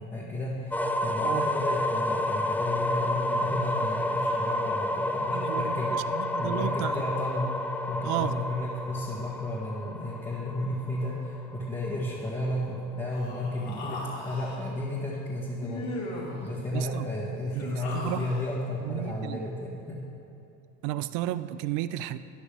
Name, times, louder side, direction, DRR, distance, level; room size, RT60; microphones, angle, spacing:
voice 1, 0.0-7.6 7.9-15.9 16.4-20.0, left 1 dB, 25° left, -7 dB, 1.9 m, -33 dB
sound 1, 0.7-12.5, left 1 dB, 5° left, 0.3 m, -30 dB
voice 2, 5.3-7.1 8.0-8.4 16.7-17.1 17.5-18.3 18.8-19.4 20.8-22.2, right 13 dB, 80° right, 14 dB, 0.5 m, -33 dB
Human voice, 13.1-14.6 15.6-16.5 17.4-18.5, left 2 dB, 65° left, 2.3 m, -38 dB
13.0 x 9.9 x 3.5 m, 2.8 s
supercardioid pair, 100°, 29 cm